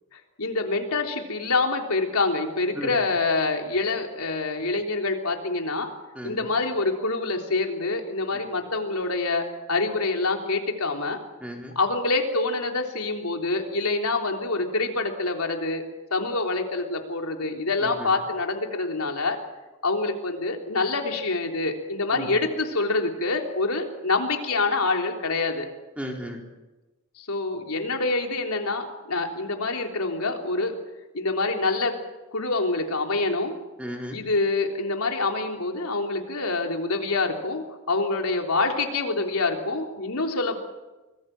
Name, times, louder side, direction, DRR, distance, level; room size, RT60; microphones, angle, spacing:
voice 1, 0.4-5.9 6.2-11.2 11.8-15.8 16.1-19.4 19.8-25.7 27.2-30.8 31.1-32.0 32.3-33.5 34.1-40.6, left 3 dB, 85° left, 3 dB, 3.6 m, -26 dB
voice 2, 6.1-6.5 11.4-11.7 17.8-18.1 22.1-22.3 26.0-26.4 33.8-34.2, equal, 5° right, 1 dB, 4.0 m, -35 dB
26.0 x 20.5 x 7.8 m, 1.1 s
head